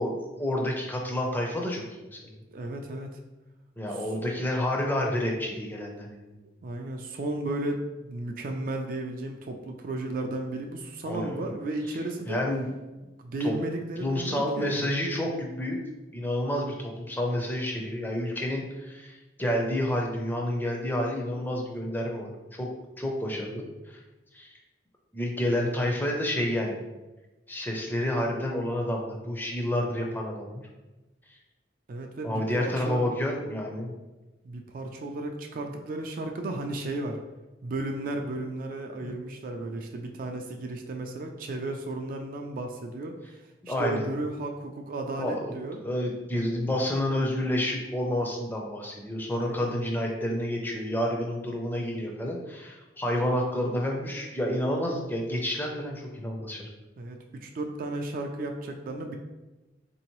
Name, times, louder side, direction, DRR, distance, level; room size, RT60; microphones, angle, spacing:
voice 1, 0.0-2.3 3.8-6.4 11.0-11.3 12.3-12.7 13.4-13.6 14.0-15.8 16.1-22.7 23.0-23.7 24.3-24.5 25.1-26.8 27.5-30.6 32.2-33.9 39.0-39.1 43.7-44.1 45.2-45.5 45.8-56.7, left 1 dB, 10° left, 0 dB, 0.5 m, -29 dB
voice 2, 2.5-3.1 3.9-4.1 6.6-12.4 13.2-14.9 31.9-33.0 34.4-37.2 37.6-43.1 43.7-45.8 49.4-49.8 57.0-59.2, right 2 dB, 50° right, 3 dB, 0.3 m, -34 dB
3.7 x 2.7 x 3.0 m, 1.1 s
head